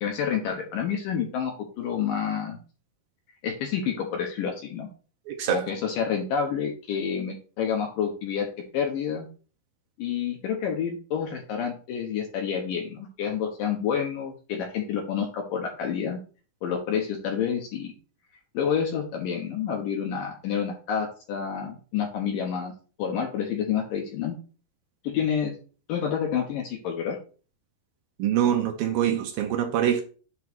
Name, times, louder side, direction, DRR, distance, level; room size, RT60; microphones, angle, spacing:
voice 1, 0.0-2.6 3.4-4.9 5.5-8.5 8.7-9.3 10.0-16.2 16.6-17.9 18.5-22.7 23.0-24.4 25.0-25.6 25.9-27.2, left 7 dB, 70° left, 2.1 m, -29 dB
voice 2, 5.3-5.7 28.2-30.0, right 10 dB, 80° right, 2.1 m, -24 dB
8.4 x 3.1 x 6.1 m
omnidirectional pair, 5.1 m